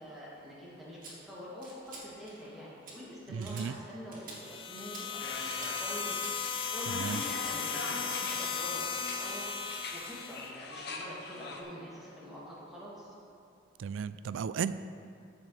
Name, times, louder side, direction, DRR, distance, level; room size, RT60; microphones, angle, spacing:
voice 1, 0.0-6.1 6.7-9.4 9.9-13.1, left 1 dB, ahead, -9 dB, 2.6 m, -45 dB
sound 1, 1.0-1.1 1.6-2.0 2.3-2.5 2.8-2.9 3.4-3.7 4.1-4.4 4.8-5.0 5.4-5.7 6.1-6.3, right 3 dB, 45° right, 2.2 m, -47 dB
voice 2, 3.3-3.8 6.9-7.2 13.8-14.7, right 7 dB, 75° right, 14 dB, 0.3 m, -34 dB
sound 2, 4.3-10.5, left 6 dB, 30° left, 0.5 m, -36 dB
sound 3, 5.2-11.6, left 3 dB, 60° left, 0.9 m, -42 dB
14.5 x 6.6 x 3.4 m, 2.5 s
head